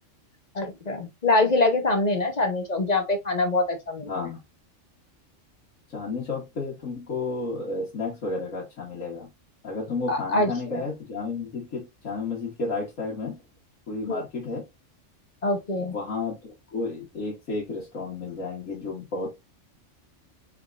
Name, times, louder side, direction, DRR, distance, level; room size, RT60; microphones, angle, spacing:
voice 1, 0.5-4.1 10.1-10.8 14.1-14.2 15.4-15.9, left 2 dB, 40° left, 0.7 m, -24 dB
voice 2, 4.1-4.4 5.9-9.3 9.6-13.4 13.9-14.6 15.8-16.4 16.7-19.3, left 3 dB, 85° left, 1.8 m, -32 dB
4.9 x 3.7 x 2.4 m
omnidirectional pair, 1.3 m